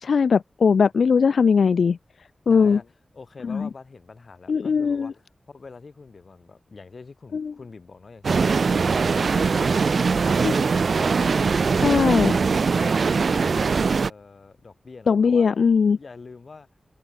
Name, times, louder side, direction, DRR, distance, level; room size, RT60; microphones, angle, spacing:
voice 1, 0.0-2.0 2.5-2.8 3.5-3.7 4.5-5.1 7.3-7.5 10.4-10.5 11.8-12.3 15.1-16.0, left 5 dB, 85° left, 0.5 m, -19 dB
voice 2, 2.5-2.8 3.1-8.9 11.1-11.8 12.2-15.5 16.0-16.7, left 4 dB, 55° left, 3.2 m, -44 dB
sound 1, 8.2-14.1, right 5 dB, 65° right, 0.4 m, -21 dB
wide cardioid pair, 110°, 0 cm